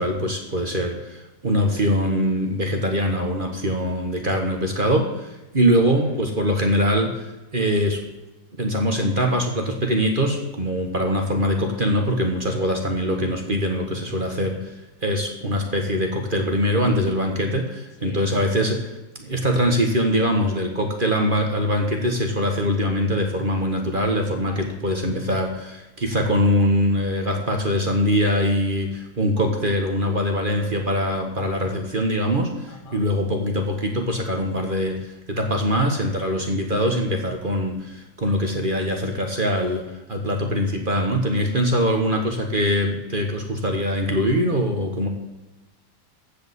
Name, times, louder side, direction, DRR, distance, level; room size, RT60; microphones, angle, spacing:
voice 1, 0.0-8.0 8.6-45.1, equal, 30° right, 3 dB, 1.6 m, -23 dB
voice 2, 5.8-6.2 18.0-18.2 24.3-24.8 32.7-33.0, left 3 dB, 70° left, 4 dB, 2.3 m, -43 dB
15.0 x 5.2 x 8.2 m, 1.0 s
omnidirectional pair, 1.9 m